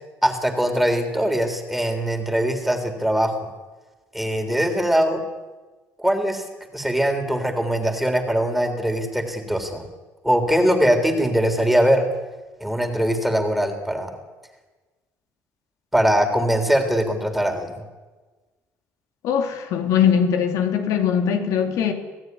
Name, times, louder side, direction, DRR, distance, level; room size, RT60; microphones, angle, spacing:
voice 1, 0.2-3.5 4.1-5.2 6.0-6.4 6.7-9.9 10.2-12.1 12.6-14.1 15.9-17.9, equal, ahead, 5 dB, 3.5 m, -21 dB
voice 2, 19.2-21.9, left 8 dB, 80° left, 4 dB, 3.3 m, -21 dB
27.5 x 17.0 x 9.6 m, 1.3 s
cardioid pair, 135°, 6 cm